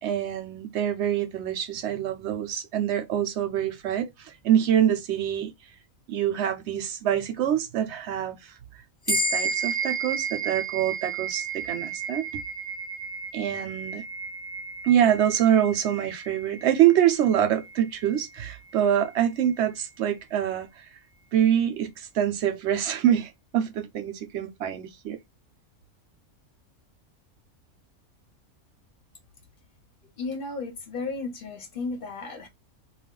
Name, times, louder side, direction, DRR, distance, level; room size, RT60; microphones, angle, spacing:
voice 1, 0.0-5.5 6.1-8.5 9.1-12.4 13.3-14.0 14.8-20.9 21.3-25.2, right 10 dB, 65° right, 0.8 m, -25 dB
sound 1, 9.1-18.8, right 4 dB, 20° left, 0.8 m, -33 dB
voice 2, 30.2-32.5, left 3 dB, 50° left, 0.8 m, -34 dB
2.4 x 2.1 x 3.6 m
omnidirectional pair, 1.5 m